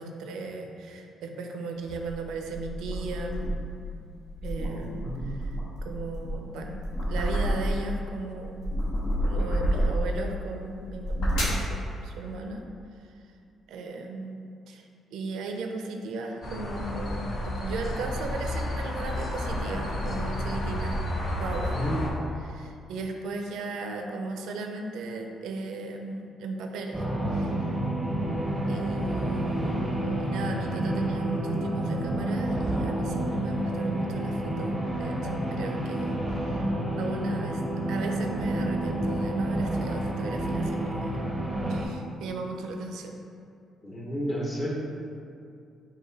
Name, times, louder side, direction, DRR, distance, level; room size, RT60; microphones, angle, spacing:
voice 1, 0.0-3.4 4.4-5.5 5.8-8.8 9.2-12.6 13.0-13.1 13.7-21.0 21.4-21.7 22.4-27.0 27.3-27.8 28.7-36.7 37.0-37.6 37.9-41.3 41.7-43.2, right 2 dB, 85° right, 3 dB, 0.4 m, -36 dB
sound 1, 1.9-3.8 4.2-8.0 8.4-10.2 10.8-11.7, equal, 80° left, 1.1 m, -29 dB
voice 2, 4.7-5.3 21.7-22.0 43.8-44.7, equal, 25° left, -3 dB, 0.9 m, -32 dB
sound 2, 16.4-22.1, left 1 dB, 55° left, 0.7 m, -31 dB
sound 3, 26.9-41.8, right 1 dB, 15° right, 0.6 m, -29 dB
4.9 x 2.2 x 3.9 m, 2.5 s
cardioid pair, 90°, 0 cm